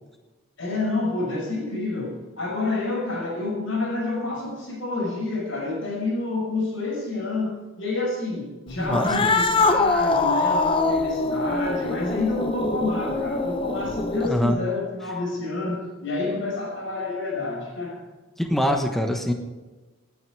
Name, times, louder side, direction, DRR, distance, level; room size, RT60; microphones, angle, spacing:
voice 1, 0.6-18.1, left 2 dB, 60° left, -2 dB, 5.9 m, -28 dB
voice 2, 8.8-9.3 14.3-14.6 18.4-19.3, equal, ahead, 3 dB, 1.2 m, -24 dB
Cat, 8.9-14.5, left 3 dB, 25° left, 0.7 m, -24 dB
18.5 x 9.5 x 4.8 m, 1.2 s
head